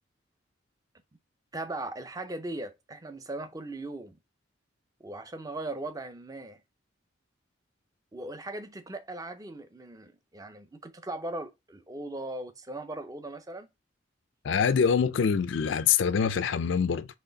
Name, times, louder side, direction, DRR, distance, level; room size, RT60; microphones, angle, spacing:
voice 1, 1.5-4.2 5.0-6.6 8.1-13.7, right 2 dB, 20° right, 0.5 m, -38 dB
voice 2, 14.4-17.1, left 6 dB, 70° left, 0.4 m, -25 dB
4.3 x 3.1 x 3.9 m
head